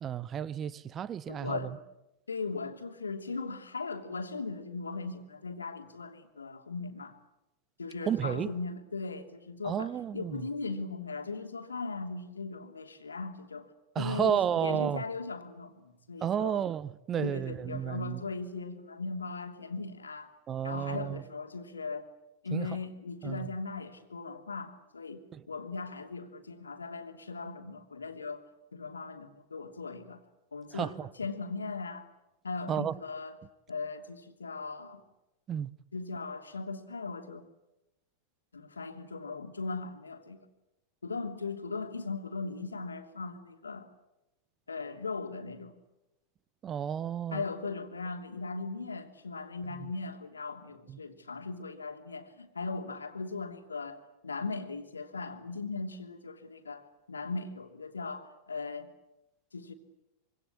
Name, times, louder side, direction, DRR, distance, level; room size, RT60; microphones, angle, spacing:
voice 1, 0.0-1.8 8.1-8.5 9.6-10.5 13.9-15.0 16.2-18.2 20.5-21.2 22.5-22.7 23.2-23.5 25.3-25.4 30.7-31.1 32.7-33.0 35.5-35.7 46.6-47.4 49.7-49.9 50.9-51.0, right 9 dB, 25° right, 1.0 m, -32 dB
voice 2, 1.3-1.8 2.3-7.2 7.8-13.7 14.0-16.6 17.2-20.3 20.6-22.1 22.4-28.4 28.7-30.2 30.5-32.1 32.4-33.3 33.7-35.0 35.9-37.4 38.5-40.4 41.0-43.9 44.7-45.7 47.3-58.9 59.5-59.7, left 4 dB, 75° left, 2.9 m, -38 dB
25.5 x 25.0 x 8.7 m
figure-of-eight pair, 90°, 0 cm